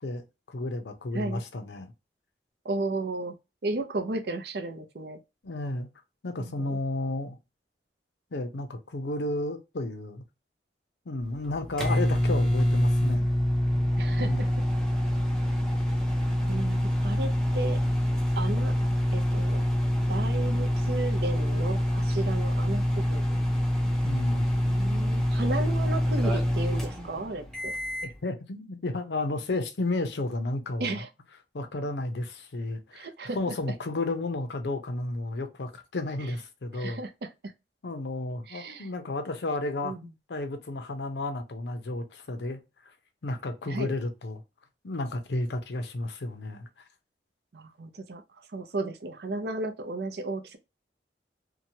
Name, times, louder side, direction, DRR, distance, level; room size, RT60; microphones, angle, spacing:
voice 1, 0.0-1.9 5.4-5.9 6.2-7.4 8.3-10.2 11.1-13.3 14.2-14.5 24.0-24.5 28.2-31.0 31.5-33.1 33.3-37.0 37.8-40.0 40.3-42.9 43.2-44.4 44.8-46.7, left 2 dB, 75° left, 0.6 m, -32 dB
voice 2, 2.6-3.4 3.6-5.2 6.4-6.8 14.0-14.5 16.5-17.8 18.4-18.7 19.1-19.6 20.1-23.4 24.6-27.7 30.8-31.1 32.9-33.6 36.7-37.5 38.5-38.9 39.8-40.0 43.7-43.9 47.5-50.6, right 2 dB, 65° right, 0.5 m, -34 dB
sound 1, 11.2-28.2, equal, 5° left, 0.6 m, -26 dB
2.9 x 2.2 x 2.7 m
head